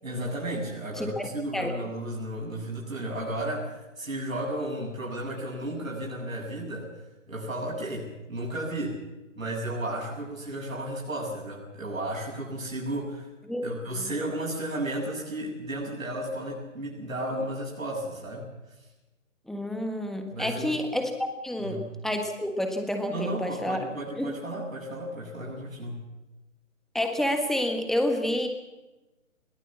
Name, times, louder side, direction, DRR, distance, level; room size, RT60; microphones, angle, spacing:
voice 1, 0.0-6.9 7.3-9.0 9.4-13.3 13.6-18.5 20.3-20.8 21.6-21.8 23.1-26.0, right 1 dB, 80° right, -3 dB, 7.8 m, -33 dB
voice 2, 1.0-1.3 1.5-1.7 13.4-14.1 19.5-23.8 24.2-24.3 26.9-28.5, left 1 dB, ahead, 5 dB, 1.5 m, -29 dB
22.0 x 18.5 x 7.4 m, 1.0 s
figure-of-eight pair, 140°, 40 cm